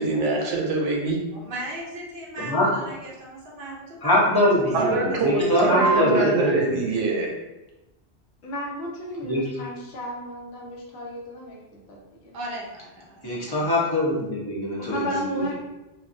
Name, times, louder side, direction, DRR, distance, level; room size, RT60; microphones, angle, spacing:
voice 1, 0.0-1.2 4.7-7.3, right 3 dB, 85° right, 0 dB, 1.0 m, -24 dB
voice 2, 1.3-4.2 4.8-5.5 12.3-13.7, right 1 dB, 55° right, -3 dB, 0.8 m, -37 dB
voice 3, 2.4-2.7 4.0-6.8 9.2-9.4 13.2-15.5, left 1 dB, 25° left, -6 dB, 0.7 m, -23 dB
voice 4, 5.7-6.5 8.4-12.4 14.8-15.5, right 1 dB, 65° left, -2 dB, 0.9 m, -31 dB
2.9 x 2.2 x 2.5 m, 0.98 s
omnidirectional pair, 1.2 m